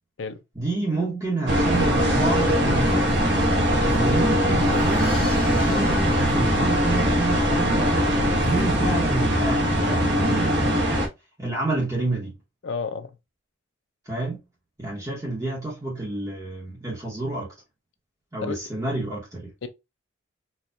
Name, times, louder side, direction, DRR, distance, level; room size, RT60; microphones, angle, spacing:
voice 1, 0.5-3.1 3.9-8.1 8.4-11.0 11.4-12.3 14.1-14.4 14.8-17.5 18.3-19.5, right 2 dB, 15° right, 1.0 m, -29 dB
sound 1, 1.5-11.1, equal, 55° right, 1.0 m, -21 dB
Crash cymbal, 4.5-7.5, left 3 dB, 45° left, 1.7 m, -42 dB
voice 2, 12.6-13.2 18.4-18.6 19.6-19.7, left 4 dB, 65° left, 0.5 m, -31 dB
4.3 x 2.3 x 2.4 m
head